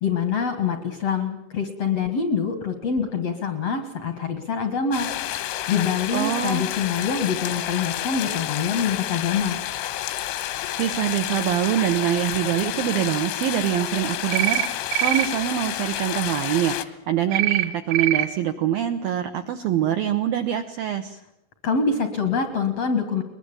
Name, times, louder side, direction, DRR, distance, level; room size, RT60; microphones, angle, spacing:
voice 1, 0.0-5.1 5.7-9.6 21.6-23.2, left 6 dB, 70° left, 8 dB, 1.5 m, -25 dB
sound 1, 4.9-16.9, left 13 dB, 85° left, 3.8 m, -30 dB
voice 2, 6.1-6.7 10.8-21.2, right 10 dB, 85° right, 8 dB, 2.1 m, -24 dB
sound 2, 14.3-14.7 14.9-15.3 17.3-17.6 17.9-18.2, right 17 dB, 65° right, 2.7 m, -22 dB
22.0 x 21.0 x 8.8 m, 0.83 s
omnidirectional pair, 5.7 m